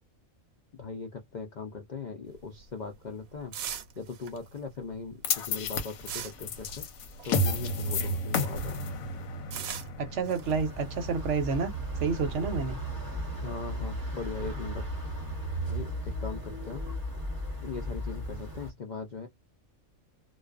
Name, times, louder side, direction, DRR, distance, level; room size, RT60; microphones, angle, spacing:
voice 1, 0.7-3.6 4.0-6.8 7.2-8.8 13.4-14.8 15.6-16.8 17.6-19.3, left 4 dB, 70° left, 0.4 m, -40 dB
sound 1, 2.3-8.3 8.6-12.0, right 8 dB, 85° right, 1.1 m, -42 dB
sound 2, 5.2-11.5, left 2 dB, 90° left, 1.1 m, -32 dB
voice 2, 10.0-11.7 12.0-12.8, right 5 dB, 65° right, 0.9 m, -29 dB
sound 3, 10.4-18.7, right 1 dB, 20° right, 0.7 m, -36 dB
2.4 x 2.3 x 2.3 m
omnidirectional pair, 1.4 m